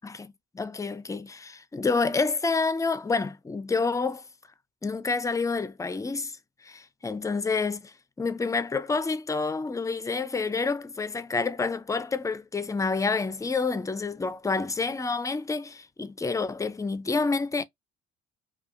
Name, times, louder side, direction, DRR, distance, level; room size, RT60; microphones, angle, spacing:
voice 1, 0.0-4.2 4.8-6.4 6.6-17.6, left 4 dB, 10° left, 0.4 m, -28 dB
2.7 x 2.3 x 2.5 m
hypercardioid pair, 55°, 32 cm